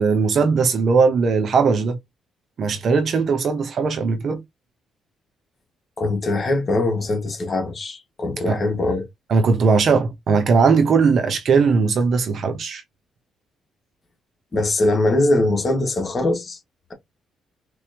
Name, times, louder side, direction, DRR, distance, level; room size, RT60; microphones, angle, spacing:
voice 1, 0.0-2.0 2.6-4.4 8.5-8.6 9.3-12.8, right 5 dB, 55° right, 0.9 m, -19 dB
voice 2, 6.0-9.1 14.5-16.6, left 2 dB, 35° left, 1.9 m, -21 dB
4.3 x 3.3 x 3.0 m
cardioid pair, 90°, 0 cm